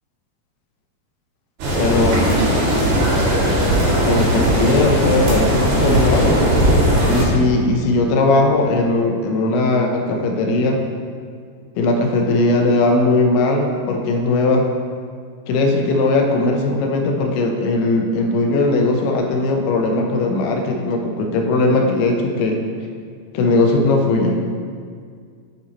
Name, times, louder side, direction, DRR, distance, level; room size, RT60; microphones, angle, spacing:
sound 1, 1.6-7.2, right 1 dB, 80° right, 4.0 m, -17 dB
voice 1, 1.8-2.3 4.1-6.4 7.1-10.8 11.8-14.7 15.5-22.6 23.3-24.4, left 2 dB, 85° left, 3 dB, 2.6 m, -18 dB
9.6 x 4.1 x 4.3 m, 2.1 s
omnidirectional pair, 4.5 m